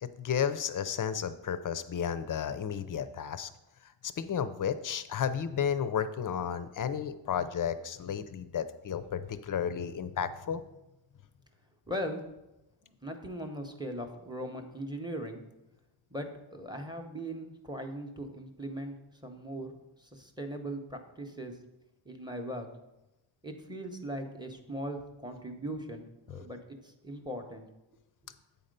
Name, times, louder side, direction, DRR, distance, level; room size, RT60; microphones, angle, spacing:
voice 1, 0.0-3.5 4.0-10.6, left 8 dB, 40° left, 12 dB, 0.5 m, -33 dB
voice 2, 11.9-12.2 12.8-15.4 16.1-19.0 19.2-21.6 22.0-22.7 23.4-27.7 28.2-28.3, equal, 10° right, 5 dB, 0.7 m, -39 dB
8.3 x 4.2 x 5.2 m, 0.96 s
wide cardioid pair, 125°, 49 cm